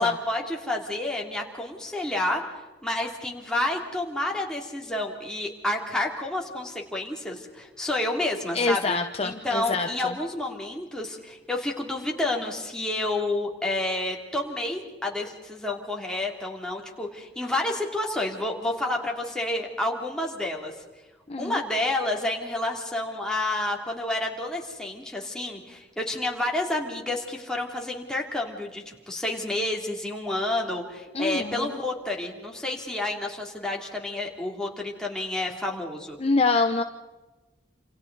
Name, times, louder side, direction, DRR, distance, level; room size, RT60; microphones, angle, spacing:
voice 1, 0.0-2.5 2.8-20.7 21.4-36.2, left 2 dB, 5° left, -1 dB, 2.9 m, -29 dB
voice 2, 8.5-10.1 21.3-21.6 31.1-31.8 36.2-36.8, left 3 dB, 35° left, 5 dB, 0.8 m, -25 dB
28.0 x 28.0 x 4.1 m, 1.2 s
head